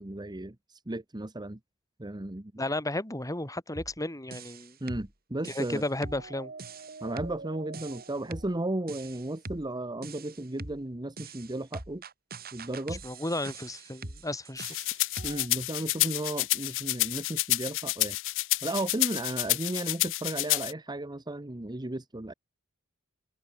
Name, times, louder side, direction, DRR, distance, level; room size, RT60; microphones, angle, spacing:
voice 1, 0.0-1.6 2.0-2.5 4.8-5.8 7.0-12.0 12.5-13.0 15.2-18.2 18.6-22.3, right 1 dB, 20° right, 1.1 m, -34 dB
voice 2, 2.6-4.8 5.5-6.5 12.9-14.7, left 1 dB, 15° left, 3.7 m, -33 dB
sound 1, 3.8-4.0 4.3-5.1 5.5-8.6 8.9-9.7 10.0-10.8 11.2-15.5, right 3 dB, 45° right, 4.8 m, -43 dB
sound 2, 14.6-20.7, left 19 dB, 60° left, 0.5 m, -29 dB
head